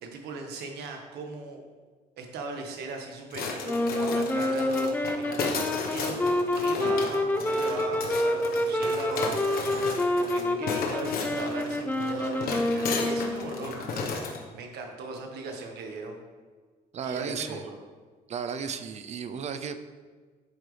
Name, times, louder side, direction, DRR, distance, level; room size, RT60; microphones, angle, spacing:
voice 1, 0.0-1.6 2.2-16.2 17.0-17.6, right 3 dB, 85° right, 2 dB, 1.6 m, -39 dB
sound 1, 3.3-14.4, left 4 dB, 65° left, 1.4 m, -34 dB
sound 2, 3.6-13.7, left 1 dB, 10° left, 0.6 m, -28 dB
voice 2, 16.9-17.6 18.3-19.9, right 6 dB, 45° right, 10 dB, 0.6 m, -34 dB
10.5 x 7.9 x 3.4 m, 1.5 s
cardioid pair, 135°, 16 cm